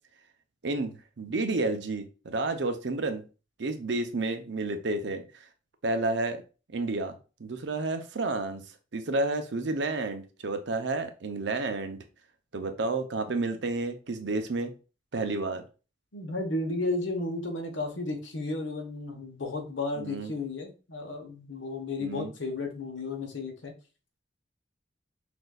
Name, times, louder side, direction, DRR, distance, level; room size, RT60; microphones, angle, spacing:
voice 1, 0.6-3.2 3.6-5.4 5.8-6.4 6.7-7.1 7.4-8.6 8.9-12.0 12.5-14.7 15.1-15.6 20.0-20.3 22.0-22.3, right 2 dB, 70° right, 7 dB, 0.6 m, -30 dB
voice 2, 16.1-23.7, left 2 dB, 90° left, 4 dB, 1.0 m, -33 dB
5.9 x 2.6 x 2.3 m, 0.33 s
head